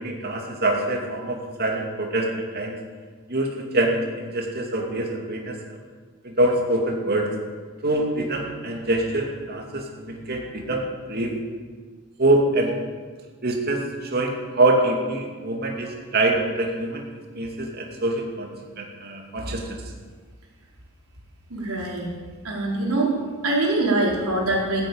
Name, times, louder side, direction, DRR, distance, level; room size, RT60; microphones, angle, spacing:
voice 1, 0.0-2.8 3.3-5.6 6.2-7.3 7.8-11.4 12.2-12.7 13.4-17.1 17.3-18.5 18.8-19.9, right 2 dB, 45° right, 1 dB, 2.6 m, -25 dB
voice 2, 21.5-22.1 22.4-23.1 23.4-24.9, right 2 dB, 85° right, -3 dB, 4.4 m, -23 dB
15.0 x 8.8 x 8.9 m, 1.5 s
head